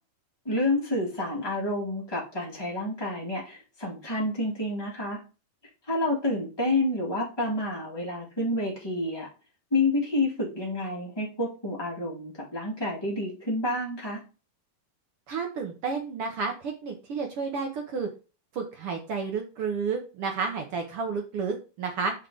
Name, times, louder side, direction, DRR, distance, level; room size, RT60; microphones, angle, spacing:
voice 1, 0.4-5.2 5.9-9.3 9.7-14.2, left 2 dB, 15° left, -4 dB, 0.8 m, -29 dB
voice 2, 15.3-18.1 18.5-22.1, right 5 dB, 70° right, 3 dB, 1.4 m, -31 dB
8.1 x 5.3 x 3.8 m, 0.33 s
omnidirectional pair, 3.8 m